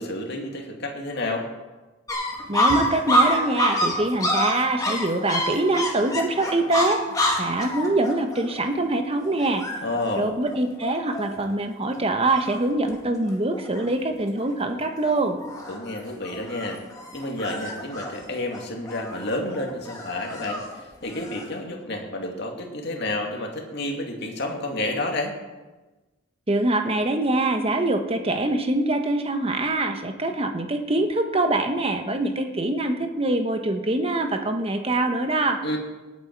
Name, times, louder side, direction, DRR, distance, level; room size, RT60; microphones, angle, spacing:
voice 1, 0.0-1.5 9.8-10.4 15.7-16.8 17.1-25.4 35.6-35.8, left 1 dB, 55° left, 2 dB, 2.2 m, -30 dB
sound 1, 2.1-11.5 12.0-12.1 12.3-13.0 13.2-13.9 14.4-14.7 15.0-21.5, equal, 20° left, 2.1 m, -27 dB
voice 2, 2.5-7.0 7.4-9.7 10.2-15.4 26.5-35.6, right 2 dB, 30° right, 6 dB, 1.1 m, -24 dB
18.5 x 8.7 x 4.6 m, 1.2 s
head